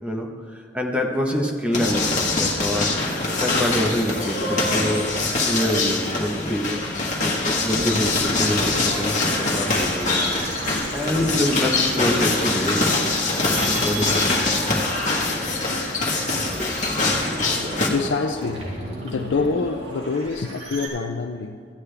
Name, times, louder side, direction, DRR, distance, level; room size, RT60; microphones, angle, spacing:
voice 1, 0.0-2.9 3.4-5.0 5.5-6.8 7.2-10.7 10.9-12.9 13.1-13.3 13.8-14.3 16.4-16.7, left 1 dB, 5° right, 0 dB, 1.0 m, -26 dB
sound 1, 1.7-17.9, left 2 dB, 45° left, 1.6 m, -23 dB
sound 2, 3.2-6.2 6.8-7.6 8.0-20.9, right 1 dB, 70° right, 2.4 m, -36 dB
voice 2, 17.9-18.7 19.0-21.7, left 4 dB, 85° left, 5 dB, 0.5 m, -26 dB
14.5 x 9.5 x 3.4 m, 2.4 s
head